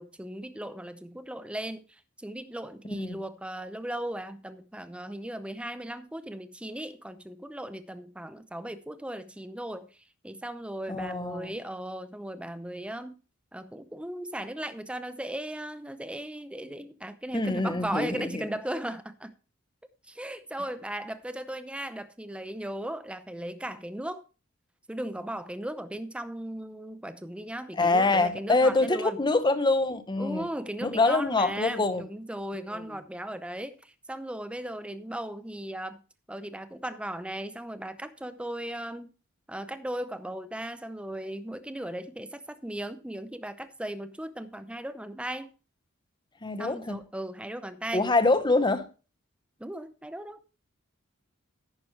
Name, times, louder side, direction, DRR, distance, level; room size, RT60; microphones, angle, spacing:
voice 1, 0.0-13.2 13.5-19.3 20.1-24.2 24.9-29.2 30.2-36.0 36.3-39.1 39.5-45.5 46.6-48.1 49.6-50.5, right 1 dB, 5° right, 0.6 m, -37 dB
voice 2, 10.9-11.5 17.3-18.4 27.8-30.5 30.8-32.0 32.7-32.8 46.4-47.0 47.9-48.9, left 3 dB, 20° left, 0.9 m, -25 dB
10.5 x 9.3 x 3.2 m
head